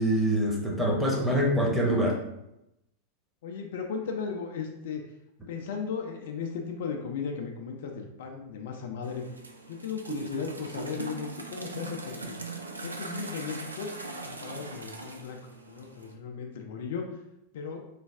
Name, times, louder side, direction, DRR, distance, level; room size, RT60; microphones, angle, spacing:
voice 1, 0.0-2.2, equal, ahead, -4 dB, 0.8 m, -25 dB
voice 2, 3.4-5.0 5.5-9.3 9.7-12.4 12.8-13.9 14.2-17.2 17.5-17.8, left 6 dB, 55° left, 2 dB, 0.4 m, -36 dB
sound 1, 9.0-16.1, right 3 dB, 80° right, 0.3 m, -40 dB
3.2 x 2.3 x 3.4 m, 0.86 s
figure-of-eight pair, 90°, 0 cm